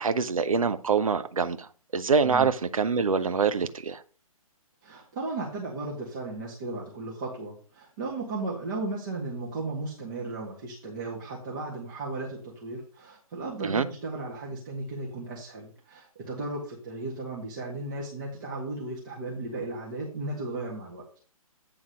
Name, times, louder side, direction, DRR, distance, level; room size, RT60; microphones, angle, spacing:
voice 1, 0.0-1.7 1.9-4.0 13.6-13.9, right 5 dB, 65° right, 0.7 m, -25 dB
voice 2, 4.8-21.0, right 2 dB, 35° right, 1.7 m, -35 dB
8.7 x 3.6 x 6.3 m
figure-of-eight pair, 135°, 19 cm